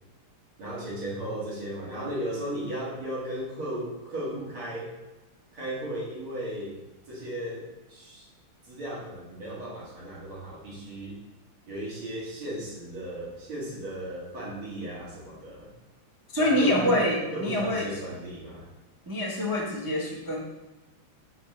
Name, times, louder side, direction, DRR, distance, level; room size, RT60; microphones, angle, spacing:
voice 1, 0.6-4.9 5.5-6.7 7.1-8.2 8.7-11.2 11.7-15.7 16.4-17.0 17.3-18.7, right 1 dB, 80° right, -6 dB, 2.9 m, -35 dB
voice 2, 16.3-17.9 19.1-20.4, left 1 dB, 30° right, -2 dB, 0.4 m, -25 dB
6.0 x 5.4 x 3.2 m, 1.1 s
omnidirectional pair, 2.3 m